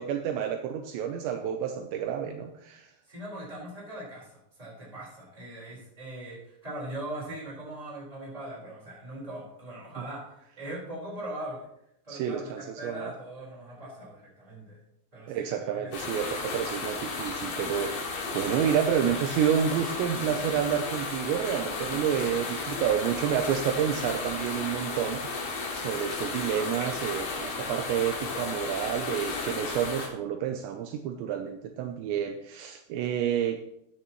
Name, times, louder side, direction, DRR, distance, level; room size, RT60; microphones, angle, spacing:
voice 1, 0.0-2.9 12.1-13.1 15.3-33.6, right 9 dB, 80° right, 5 dB, 2.8 m, -29 dB
voice 2, 3.1-11.7 12.0-14.8 15.1-16.1, right 1 dB, 10° right, -5 dB, 3.8 m, -40 dB
sound 1, 15.9-30.1, left 4 dB, 55° left, 3.0 m, -34 dB
13.0 x 9.5 x 3.0 m, 0.77 s
omnidirectional pair, 5.4 m